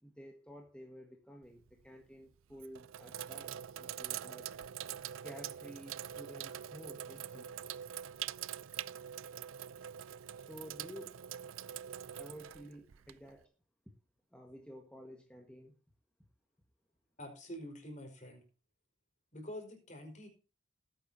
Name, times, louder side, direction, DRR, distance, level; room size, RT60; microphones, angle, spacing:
voice 1, 0.0-4.6 5.2-7.7 10.4-11.2 12.2-13.5 14.3-15.7, equal, 5° left, 2 dB, 1.5 m, -52 dB
Sink (filling or washing), 1.4-1.9 2.5-13.4, right 10 dB, 90° right, 0.4 m, -44 dB
voice 2, 17.2-18.4 19.3-20.3, equal, 35° left, 3 dB, 4.7 m, -46 dB
20.0 x 9.1 x 2.8 m, 0.33 s
head